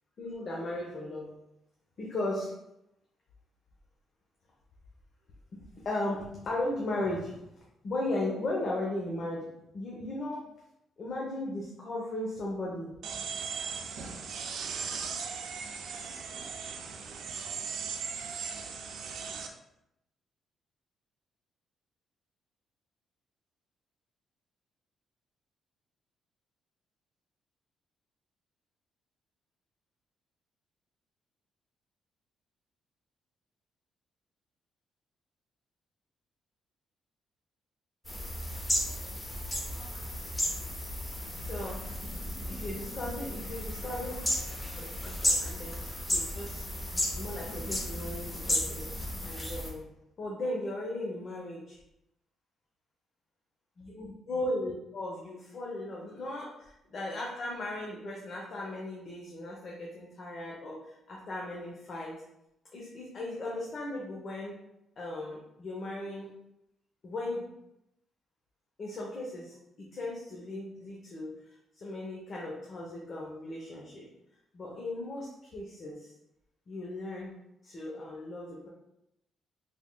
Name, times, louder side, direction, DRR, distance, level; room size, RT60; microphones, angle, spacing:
voice 1, 0.2-1.3 2.0-2.5 5.8-7.4 7.8-9.5 9.7-10.4 11.0-12.9 38.5-38.6 41.4-41.8 42.5-44.1 44.7-46.6 46.9-49.9 50.2-51.8 53.8-62.2 62.7-64.5 65.0-66.3 67.0-67.5 68.8-71.4 71.7-74.1 74.5-76.1 76.7-77.4 77.6-78.7, left 1 dB, 50° left, -3 dB, 0.7 m, -37 dB
sound 1, 13.0-19.5, right 6 dB, 70° right, 0.4 m, -38 dB
sound 2, 38.0-49.7, left 1 dB, 15° left, 0.8 m, -34 dB
3.5 x 3.5 x 2.2 m, 0.85 s
cardioid pair, 90°, 0 cm